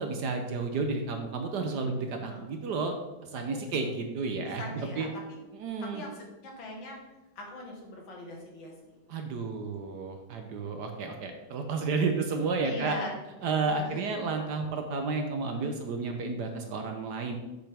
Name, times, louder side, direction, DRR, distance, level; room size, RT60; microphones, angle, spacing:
voice 1, 0.0-2.9 3.2-5.1 5.5-6.0 9.1-13.0 13.4-17.4, right 4 dB, 65° right, 5 dB, 1.2 m, -32 dB
voice 2, 4.6-5.1 5.9-6.1 6.4-7.0 7.4-8.9 9.6-9.9 10.5-10.9 11.8-12.0 12.6-13.1 13.7-14.0 15.5-15.8, left 1 dB, 70° left, 0 dB, 2.2 m, -41 dB
7.8 x 6.6 x 3.4 m, 1.0 s
omnidirectional pair, 2.2 m